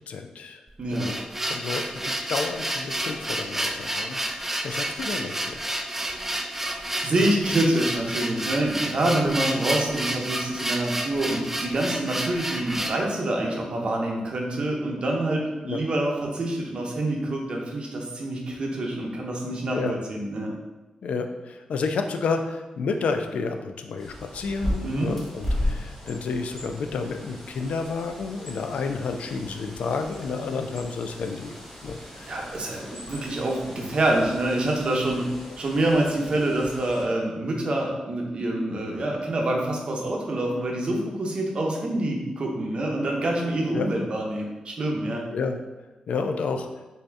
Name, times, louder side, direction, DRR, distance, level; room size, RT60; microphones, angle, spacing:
voice 1, 0.1-0.6 0.9-1.2 1.4-5.6 15.6-15.8 19.7-19.9 21.0-31.6 31.8-32.4 33.1-33.3 43.7-43.9 45.3-45.6 46.1-46.7, left 4 dB, 80° left, 6 dB, 0.3 m, -30 dB
sound 1, 0.7-13.0, right 1 dB, 15° right, 0.3 m, -30 dB
voice 2, 7.0-20.5 24.8-25.1 32.2-35.3 35.6-45.3, right 1 dB, 50° right, 0 dB, 0.7 m, -26 dB
Bird, 24.0-37.0, left 1 dB, 15° left, 0.9 m, -36 dB
3.5 x 2.7 x 3.3 m, 1.1 s
cardioid pair, 95°, 2 cm